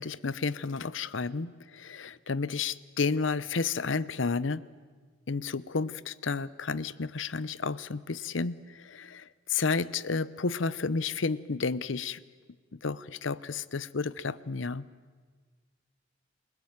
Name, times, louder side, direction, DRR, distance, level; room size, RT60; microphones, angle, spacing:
voice 1, 0.0-4.6 5.3-12.2 12.7-14.9, left 4 dB, 75° left, 18 dB, 0.8 m, -31 dB
29.0 x 18.0 x 9.5 m, 1.5 s
head